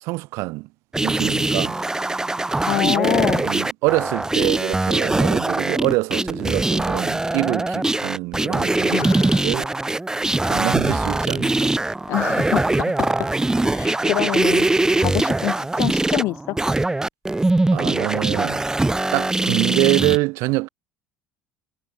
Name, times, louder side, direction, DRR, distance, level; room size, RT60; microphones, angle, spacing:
voice 1, 0.0-0.7 1.0-1.8 3.4-9.1 9.4-9.7 10.5-11.7 17.7-18.6 19.1-20.7, right 23 dB, 65° right, 1.0 m, -25 dB
sound 1, 0.9-20.2, right 2 dB, 10° right, 2.9 m, -22 dB
voice 2, 2.7-3.4 8.9-9.5 12.1-13.3 13.6-14.7 15.0-16.6, left 18 dB, 60° left, 3.1 m, -26 dB
hypercardioid pair, 70°, 5 cm